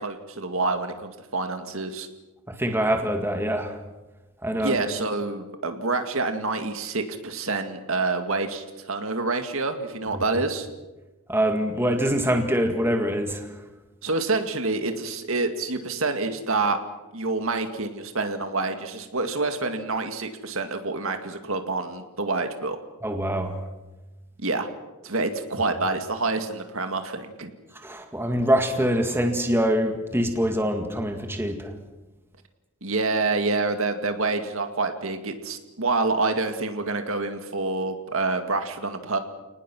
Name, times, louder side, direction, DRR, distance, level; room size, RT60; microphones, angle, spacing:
voice 1, 0.0-2.1 4.6-10.7 14.0-16.8 17.1-22.8 24.4-24.7 25.0-27.5 32.8-39.2, right 3 dB, 65° right, 7 dB, 2.1 m, -27 dB
voice 2, 2.5-3.8 4.4-4.8 10.1-10.2 11.3-13.6 23.0-23.6 27.7-31.8, equal, 10° right, 4 dB, 1.9 m, -24 dB
30.0 x 19.5 x 6.2 m, 1.1 s
head